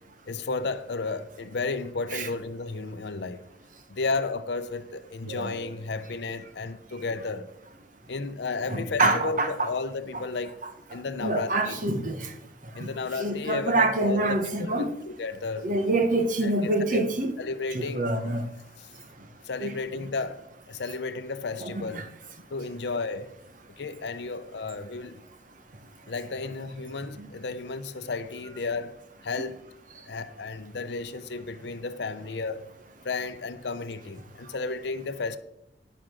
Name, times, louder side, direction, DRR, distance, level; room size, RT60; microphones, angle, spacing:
voice 1, 0.3-3.4 3.9-7.5 8.1-10.6 10.9-11.8 12.7-15.7 16.4-17.1 17.4-18.1 18.8-18.9 19.4-22.1 22.5-23.3 23.8-25.2 26.1-29.0 29.2-29.6 30.1-32.7 33.0-35.4, left 3 dB, 70° left, 0.6 m, -33 dB
voice 2, 5.3-5.7 8.7-9.7 10.6-10.7 11.2-12.3 12.8-12.9 13.2-14.9 15.6-17.3 17.7-18.4 19.6-19.7 21.6-22.0 27.2-27.3, right 2 dB, 45° right, 1.1 m, -26 dB
10.5 x 4.9 x 6.2 m
head